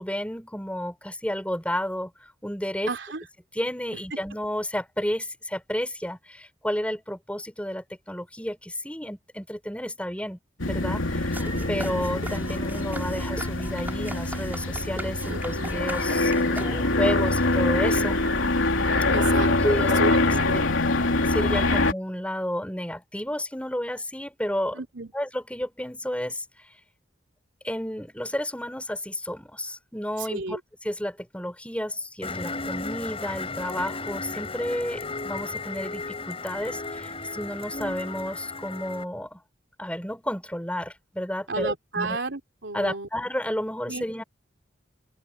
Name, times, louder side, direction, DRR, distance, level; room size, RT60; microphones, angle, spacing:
voice 1, 0.0-2.1 2.4-2.9 3.5-10.4 10.7-18.2 19.5-20.4 21.3-24.8 25.1-26.4 27.6-39.4 39.8-42.2 42.7-44.2, equal, 5° left, 6.3 m, -31 dB
voice 2, 2.9-3.2 15.3-15.7 19.1-20.7 24.7-25.1 30.3-30.6 41.5-43.1 43.9-44.1, right 3 dB, 65° right, 3.5 m, -32 dB
sound 1, 10.6-21.9, left 2 dB, 85° left, 3.2 m, -24 dB
sound 2, 11.3-17.1, right 1 dB, 10° right, 5.4 m, -39 dB
sound 3, 32.2-39.0, left 3 dB, 30° left, 5.9 m, -34 dB
head